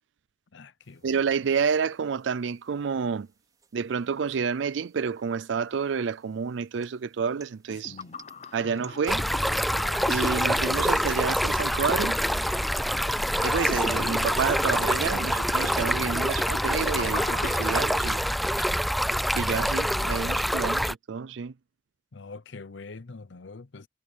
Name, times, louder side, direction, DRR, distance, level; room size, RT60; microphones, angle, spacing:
voice 1, 0.5-1.2 7.8-8.2 19.9-20.5 22.1-23.9, left 3 dB, 75° left, 0.8 m, -44 dB
sound 1, 0.8-19.4, right 5 dB, 20° right, 5.0 m, -55 dB
voice 2, 1.0-3.3 3.7-8.0 8.5-9.3 10.1-12.2 13.4-18.2 19.4-21.5, right 6 dB, 75° right, 0.4 m, -29 dB
sound 2, 7.7-18.5, left 3 dB, 35° left, 0.7 m, -39 dB
Stream, 9.1-20.9, equal, ahead, 0.4 m, -26 dB
head